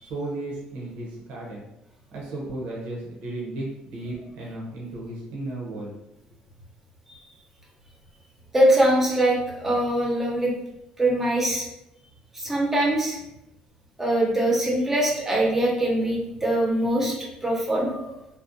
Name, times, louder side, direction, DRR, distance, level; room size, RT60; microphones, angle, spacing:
voice 1, 0.0-1.6 2.1-6.0, right 2 dB, 85° right, -3 dB, 0.7 m, -34 dB
voice 2, 8.5-10.5 11.0-11.7 12.3-13.2 14.0-18.1, right 1 dB, 15° right, -2 dB, 0.6 m, -22 dB
2.6 x 2.0 x 2.5 m, 0.87 s
cardioid pair, 120°, 2 cm